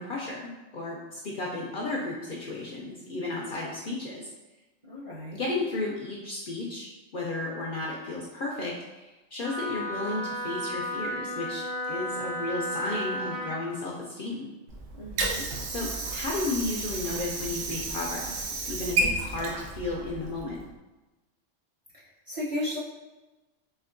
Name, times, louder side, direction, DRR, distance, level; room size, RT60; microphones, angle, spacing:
voice 1, 0.0-4.3 5.3-6.9 7.1-14.5 15.7-18.4 18.7-20.6, left 2 dB, 60° left, -3 dB, 0.6 m, -33 dB
voice 2, 4.9-5.4 15.0-15.5 22.3-22.8, left 1 dB, 35° right, -8 dB, 0.6 m, -34 dB
Wind instrument woodwind instrument, 9.4-13.6, equal, 60° right, 1.4 m, -33 dB
Water / Sink (filling or washing), 14.7-20.7, right 3 dB, 80° right, 1.0 m, -32 dB
4.3 x 2.8 x 2.5 m, 1.1 s
omnidirectional pair, 1.3 m